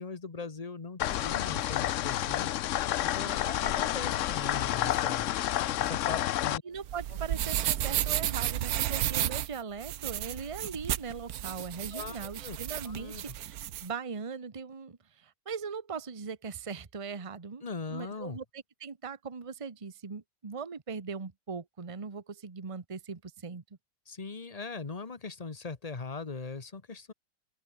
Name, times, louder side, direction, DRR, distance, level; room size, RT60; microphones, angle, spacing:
voice 1, 0.0-2.6 3.0-5.3 5.8-6.6 11.9-12.6 12.9-13.3 17.6-18.4 24.1-27.1, left 4 dB, 25° left, 1.2 m, -40 dB
sound 1, 1.0-6.6, left 13 dB, 75° left, 0.7 m, -30 dB
voice 2, 6.6-13.5 13.8-17.6 17.9-23.6, right 5 dB, 20° right, 1.0 m, -40 dB
sound 2, 6.8-13.9, right 12 dB, 65° right, 1.1 m, -32 dB
open air
omnidirectional pair, 1.9 m